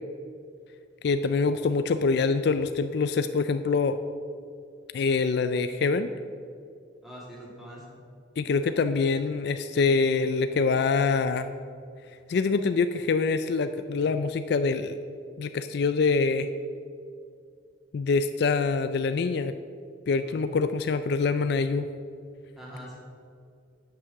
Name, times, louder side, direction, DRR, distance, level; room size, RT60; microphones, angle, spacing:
voice 1, 1.0-3.9 4.9-6.1 8.4-11.5 12.3-15.0 15.4-16.5 17.9-19.5 20.1-21.9, left 4 dB, 60° left, 10 dB, 0.4 m, -25 dB
voice 2, 7.0-8.0 20.2-20.4 22.6-23.0, equal, ahead, -5 dB, 2.5 m, -43 dB
9.5 x 6.1 x 6.4 m, 2.3 s
head